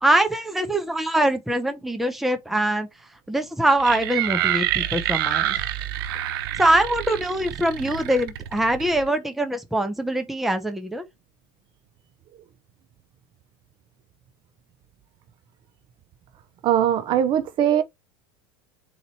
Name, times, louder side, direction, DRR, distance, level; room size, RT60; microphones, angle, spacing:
voice 1, 0.0-2.9 3.3-5.6 6.6-11.1, right 1 dB, ahead, 0.7 m, -23 dB
sound 1, 3.8-9.1, right 12 dB, 80° right, 0.6 m, -27 dB
voice 2, 16.6-17.8, right 10 dB, 40° right, 0.6 m, -20 dB
4.0 x 2.9 x 4.1 m
supercardioid pair, 120°, 12 cm